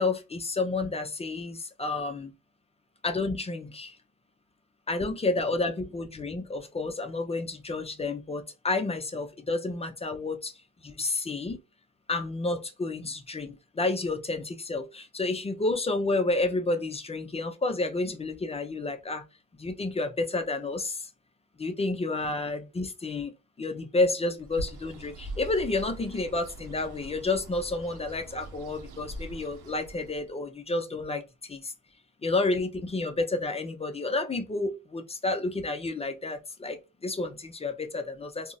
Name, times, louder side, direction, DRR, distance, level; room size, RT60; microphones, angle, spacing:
voice 1, 0.0-2.3 3.0-4.0 4.9-10.5 10.8-11.6 12.1-19.2 19.6-21.1 21.6-31.7 32.2-38.5, left 2 dB, 20° left, 0.4 m, -30 dB
Bird, 24.4-30.3, right 1 dB, 85° right, 0.6 m, -42 dB
3.7 x 2.0 x 2.2 m
cardioid pair, 90°, 30 cm